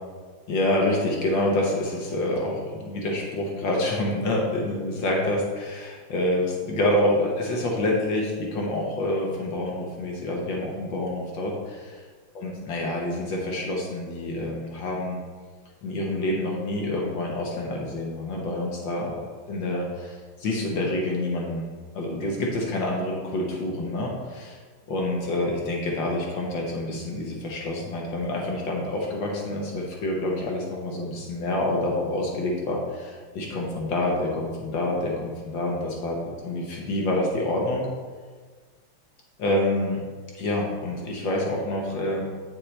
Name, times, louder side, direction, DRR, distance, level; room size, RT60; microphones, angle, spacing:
voice 1, 0.5-11.8 12.3-15.2 15.8-19.2 19.5-21.6 21.9-24.6 24.9-36.2 36.4-37.9 39.4-40.0 40.3-42.2, left 1 dB, 65° left, -1 dB, 1.2 m, -27 dB
8.9 x 7.2 x 3.3 m, 1.5 s
omnidirectional pair, 3.4 m